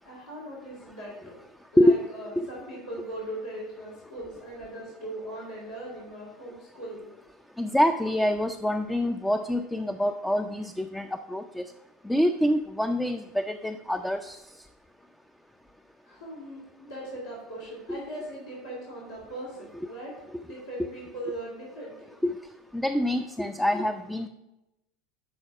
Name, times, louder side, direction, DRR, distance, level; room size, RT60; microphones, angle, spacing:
voice 1, 0.0-1.3 1.7-7.1 16.0-20.1 20.4-22.1, right 1 dB, 75° left, -8 dB, 3.0 m, -39 dB
voice 2, 7.6-11.6 12.0-14.4 17.9-18.0 22.2-22.4 22.7-24.3, equal, 5° left, 7 dB, 0.5 m, -25 dB
11.5 x 4.1 x 6.0 m, 0.94 s
figure-of-eight pair, 75°, 0 cm